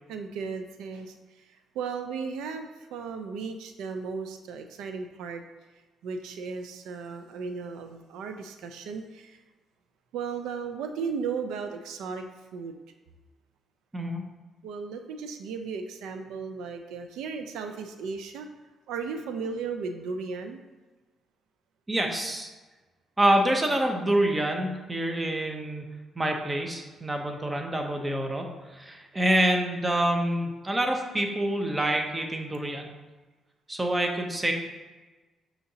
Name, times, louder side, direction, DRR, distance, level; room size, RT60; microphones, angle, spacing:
voice 1, 0.1-1.1 1.8-5.4 6.0-9.4 10.1-12.2 12.5-12.8 14.6-18.5 18.9-20.6, right 5 dB, 90° right, 6 dB, 0.3 m, -35 dB
voice 2, 21.9-22.5 23.2-32.9 33.7-34.5, right 1 dB, 20° right, 3 dB, 0.7 m, -27 dB
6.6 x 2.8 x 2.7 m, 1.2 s
cardioid pair, 90°, 0 cm